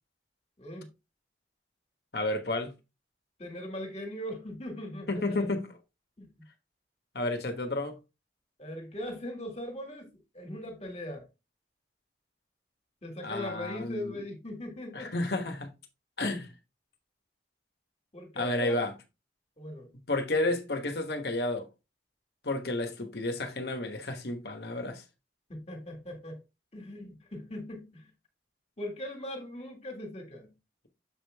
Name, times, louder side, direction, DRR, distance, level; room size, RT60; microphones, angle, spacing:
voice 1, 0.6-0.9 3.4-5.5 6.2-6.3 8.6-11.3 13.0-15.1 18.1-18.9 19.6-19.9 20.3-20.5 25.5-26.4 26.7-28.1 28.8-30.5, left 1 dB, 35° left, 1.9 m, -40 dB
voice 2, 2.1-2.7 5.1-5.6 7.1-8.0 13.2-14.2 14.9-15.7 16.2-16.5 18.3-18.9 20.1-21.7 22.4-25.0, left 2 dB, 60° left, 1.2 m, -31 dB
7.3 x 5.1 x 3.4 m
head